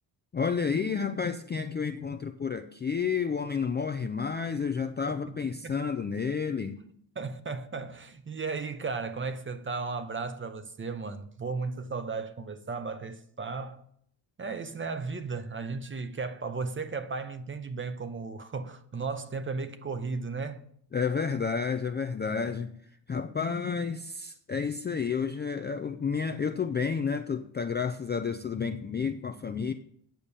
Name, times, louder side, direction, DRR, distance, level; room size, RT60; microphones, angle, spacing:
voice 1, 0.3-6.8 20.9-22.8 23.1-29.7, left 6 dB, 25° left, 0.3 m, -30 dB
voice 2, 7.2-13.8 14.4-20.7, right 4 dB, 25° right, 0.7 m, -35 dB
9.0 x 6.7 x 6.9 m
wide cardioid pair, 150°, 46 cm